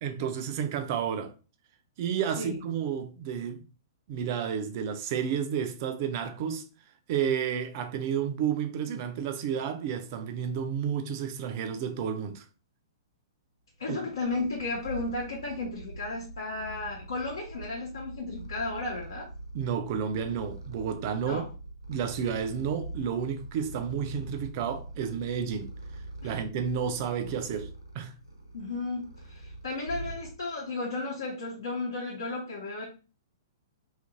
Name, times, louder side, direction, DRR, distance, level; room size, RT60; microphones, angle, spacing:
voice 1, 0.0-1.3 2.0-3.6 4.1-6.7 7.1-12.4 13.9-14.0 19.5-21.4 21.9-25.7 26.2-27.7 27.9-28.2, right 8 dB, 40° right, 0.4 m, -31 dB
voice 2, 13.8-19.3 21.2-21.4 26.2-26.4 27.2-27.3 28.5-32.8, left 3 dB, 65° left, 0.9 m, -34 dB
Purr, 13.8-30.7, right 2 dB, 90° right, 0.8 m, -43 dB
2.9 x 2.5 x 2.5 m
figure-of-eight pair, 110°, 2 cm